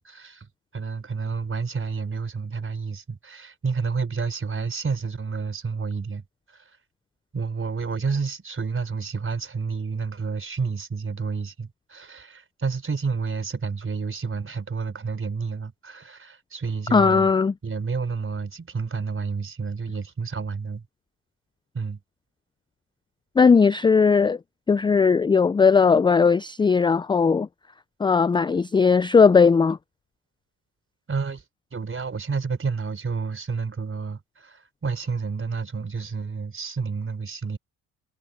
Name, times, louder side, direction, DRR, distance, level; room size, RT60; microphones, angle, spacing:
voice 1, 0.0-6.2 6.5-6.7 7.3-17.3 17.6-20.8 21.7-22.0 31.1-31.4 31.7-37.6, right 5 dB, 35° right, 4.5 m, -30 dB
voice 2, 16.9-17.5 23.4-24.4 24.7-27.5 28.0-29.8, left 5 dB, 15° left, 0.4 m, -18 dB
supercardioid pair, 65°, 39 cm